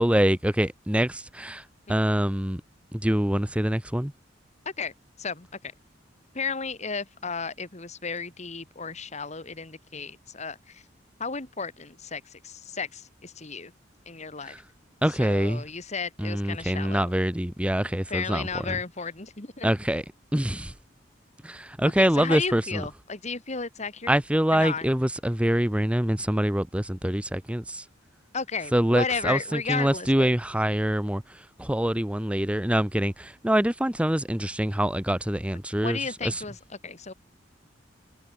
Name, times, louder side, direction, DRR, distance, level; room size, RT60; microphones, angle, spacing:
voice 1, 0.0-1.6 1.9-2.6 2.9-4.1 14.5-14.6 15.0-15.6 16.2-18.5 19.6-20.0 20.3-20.7 21.4-22.8 24.1-27.8 28.7-31.2 31.6-36.3, equal, 5° right, 0.9 m, -25 dB
voice 2, 4.8-5.7 6.3-10.8 11.2-13.7 14.1-14.6 15.1-17.1 18.1-19.7 22.0-24.2 24.5-24.9 28.3-30.3 35.8-37.1, left 5 dB, 40° left, 2.1 m, -34 dB
head